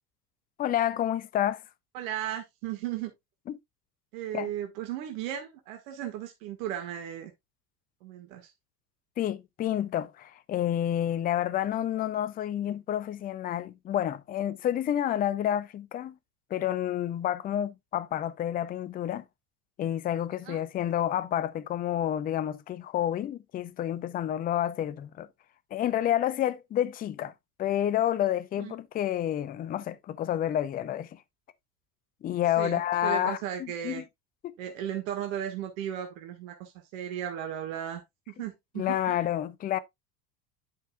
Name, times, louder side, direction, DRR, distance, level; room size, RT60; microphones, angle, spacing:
voice 1, 0.6-1.6 3.5-3.6 4.3-4.5 9.2-16.2 16.5-19.2 19.8-25.3 25.7-27.3 27.6-31.2 32.2-33.4 33.8-34.0 38.8-39.8, left 11 dB, 20° left, 0.5 m, -29 dB
voice 2, 1.9-3.1 4.1-7.3 8.0-8.5 20.4-20.6 28.6-28.7 32.6-34.0 34.6-39.2, right 10 dB, 55° right, 1.9 m, -36 dB
10.5 x 5.5 x 2.3 m
figure-of-eight pair, 80°, 47 cm